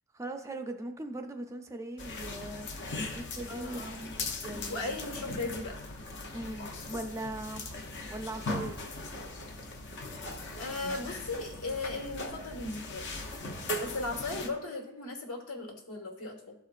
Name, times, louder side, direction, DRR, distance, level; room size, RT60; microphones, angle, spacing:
voice 1, 0.1-2.7 3.0-3.8 4.4-5.0 6.3-7.7 8.1-9.0, right 2 dB, 15° right, 5 dB, 0.4 m, -39 dB
sound 1, 2.0-14.5, left 2 dB, 55° left, 0.8 m, -39 dB
voice 2, 3.5-4.1 4.7-5.8 10.6-13.0 13.8-16.5, left 2 dB, 70° left, 1 dB, 1.5 m, -37 dB
12.5 x 4.6 x 2.5 m, 0.86 s
head